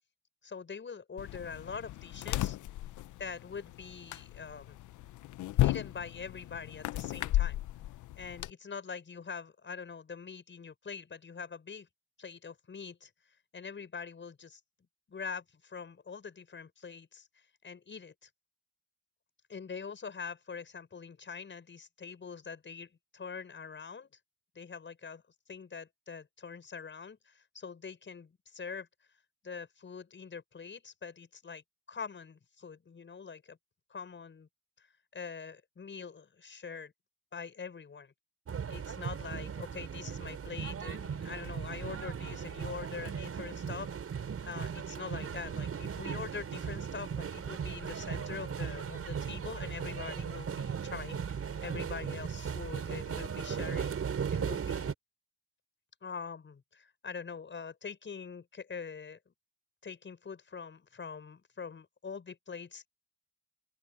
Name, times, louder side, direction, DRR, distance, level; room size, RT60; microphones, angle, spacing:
voice 1, 0.4-2.6 3.2-4.8 5.6-7.6 8.2-11.9 12.2-13.1 13.5-14.6 15.1-17.3 17.6-18.3 19.5-24.1 24.6-25.2 25.5-28.9 29.4-31.6 31.9-33.6 33.9-34.5 34.8-34.9 35.1-36.9 37.3-38.1 38.7-43.9 44.4-54.0 54.3-54.9 56.0-59.3 59.8-62.9, left 5 dB, 40° left, 7.0 m, -44 dB
sound 1, 1.2-8.5, left 15 dB, 75° left, 0.8 m, -34 dB
sound 2, 38.5-54.9, right 7 dB, 50° right, 6.0 m, -37 dB
open air
cardioid pair, 90°, 30 cm